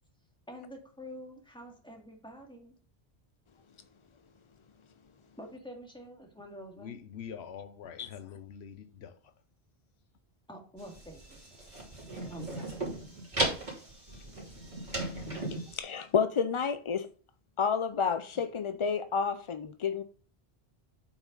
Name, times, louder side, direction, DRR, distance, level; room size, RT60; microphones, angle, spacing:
voice 1, 0.5-2.7 5.4-6.9 10.5-11.7 12.3-12.9, equal, 5° left, 2.1 m, -47 dB
voice 2, 6.8-9.2, left 8 dB, 80° left, 0.9 m, -44 dB
sound 1, 10.8-15.8, right 2 dB, 45° right, 3.0 m, -36 dB
voice 3, 15.7-17.1 17.6-20.0, left 6 dB, 45° left, 0.4 m, -30 dB
8.2 x 5.9 x 3.9 m
omnidirectional pair, 1.1 m